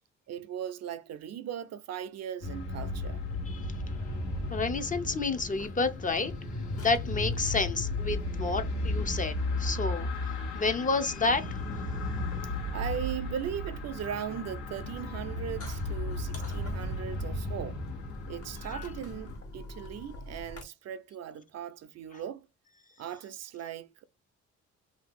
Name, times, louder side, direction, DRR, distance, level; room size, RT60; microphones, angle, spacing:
voice 1, 0.3-3.2 12.7-17.8 18.3-22.5 23.0-24.0, right 9 dB, 60° right, 0.5 m, -38 dB
sound 1, 2.4-19.4, left 2 dB, 80° left, 1.2 m, -35 dB
voice 2, 4.5-6.3 6.8-10.1 10.5-11.5 18.7-18.8, left 4 dB, 25° left, 0.6 m, -30 dB
sound 2, 5.4-20.6, left 2 dB, 50° left, 1.4 m, -48 dB
2.7 x 2.4 x 3.5 m
cardioid pair, 90°, 30 cm